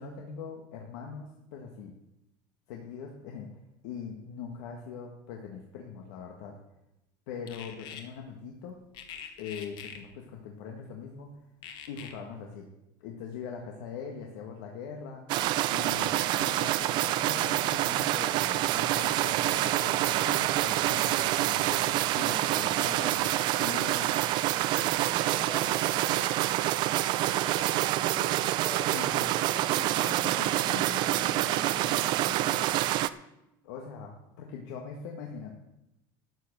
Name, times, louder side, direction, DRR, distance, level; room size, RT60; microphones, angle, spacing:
voice 1, 0.0-1.9 2.7-3.5 3.8-6.6 7.3-8.8 9.4-11.4 11.9-12.7 13.0-15.4 15.6-24.4 28.9-29.3 30.0-32.8 33.6-35.5, left 6 dB, 75° left, 1 dB, 1.6 m, -42 dB
sound 1, 7.5-8.0 8.9-10.0 11.6-12.1, left 8 dB, 45° left, 1.6 m, -43 dB
sound 2, 15.3-33.1, right 15 dB, 45° right, 0.5 m, -27 dB
voice 2, 22.3-22.7 24.7-30.5, left 3 dB, 10° left, 2 dB, 1.9 m, -45 dB
12.5 x 7.5 x 6.7 m, 0.89 s
cardioid pair, 160°, 11 cm